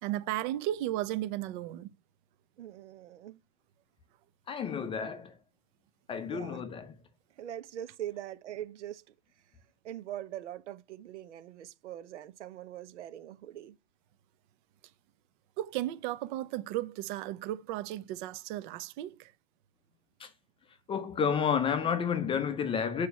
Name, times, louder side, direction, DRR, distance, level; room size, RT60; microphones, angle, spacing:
voice 1, 0.0-1.9 15.6-19.3, right 14 dB, 40° right, 0.9 m, -34 dB
voice 2, 2.6-3.4 6.2-6.6 7.4-9.1 9.8-13.8, right 12 dB, 70° right, 1.4 m, -42 dB
voice 3, 4.5-5.3 6.1-7.0 20.2-20.3 20.9-23.1, left 7 dB, 15° left, 0.7 m, -30 dB
6.7 x 4.9 x 4.1 m
hypercardioid pair, 130°, 37 cm